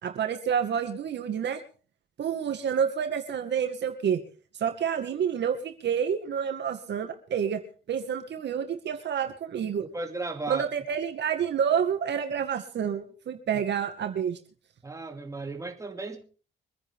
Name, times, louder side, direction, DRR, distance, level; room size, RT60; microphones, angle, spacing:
voice 1, 0.0-1.6 2.2-4.2 4.6-7.6 7.9-9.9 10.5-14.4, right 8 dB, 60° right, 6 dB, 2.1 m, -28 dB
voice 2, 9.9-10.6 14.8-16.2, right 2 dB, 15° right, 3 dB, 2.7 m, -35 dB
25.0 x 9.9 x 3.8 m, 0.39 s
cardioid pair, 90°, 20 cm